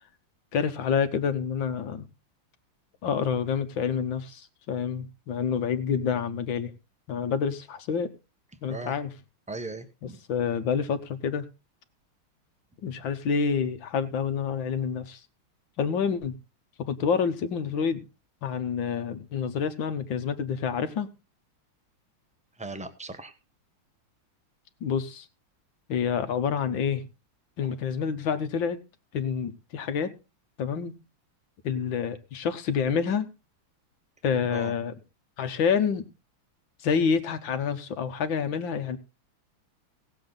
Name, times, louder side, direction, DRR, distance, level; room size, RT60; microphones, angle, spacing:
voice 1, 0.5-2.1 3.0-6.7 7.1-8.1 8.6-9.1 10.3-11.4 12.8-15.2 15.8-16.3 16.9-18.1 18.4-21.1 24.8-25.3 25.9-27.0 27.6-28.8 29.1-30.1 30.6-30.9 31.6-33.3 34.2-34.9 35.4-36.1 36.8-39.0, left 6 dB, 65° left, 10 dB, 1.9 m, -28 dB
voice 2, 9.5-10.2 22.6-23.3 27.6-27.8 34.4-34.7, right 3 dB, 10° right, 9 dB, 0.4 m, -38 dB
17.5 x 7.6 x 3.9 m, 0.29 s
omnidirectional pair, 2.3 m